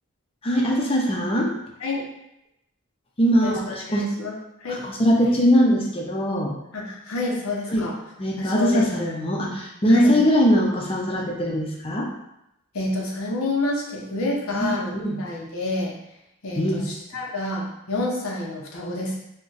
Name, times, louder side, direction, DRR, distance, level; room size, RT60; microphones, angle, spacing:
voice 1, 0.4-1.5 3.2-4.1 4.7-6.5 7.7-7.9 8.2-12.1 14.5-15.2 16.6-16.9, equal, 25° left, -1 dB, 0.5 m, -21 dB
voice 2, 3.4-4.3 4.6-4.8 6.7-7.9 8.4-9.1 9.9-10.2 12.7-14.9 15.2-15.9 16.4-19.2, left 2 dB, 85° left, -3 dB, 0.7 m, -28 dB
2.5 x 2.2 x 3.8 m, 0.83 s
head